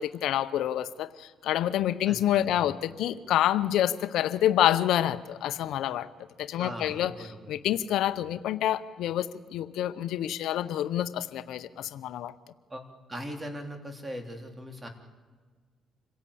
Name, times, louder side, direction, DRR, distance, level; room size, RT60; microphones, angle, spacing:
voice 1, 0.0-6.1 6.4-7.1 7.5-12.3, left 12 dB, 85° left, 13 dB, 0.7 m, -27 dB
voice 2, 6.6-7.5 12.7-12.8 13.1-14.9, equal, 20° right, 5 dB, 3.3 m, -39 dB
26.5 x 16.5 x 8.5 m, 1.5 s
cardioid pair, 90°, 0 cm